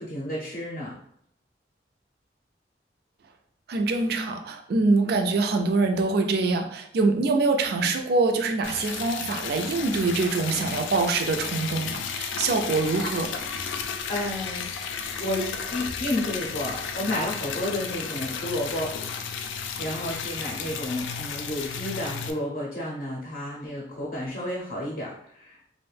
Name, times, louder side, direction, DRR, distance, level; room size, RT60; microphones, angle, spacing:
voice 1, 0.0-0.9 14.1-18.9 19.8-25.6, left 1 dB, 45° left, -5 dB, 0.6 m, -31 dB
voice 2, 3.7-13.3, right 3 dB, 60° right, 5 dB, 0.3 m, -24 dB
Liquid, 8.6-22.3, left 6 dB, 90° left, 0.3 m, -33 dB
2.5 x 2.1 x 3.2 m, 0.70 s
head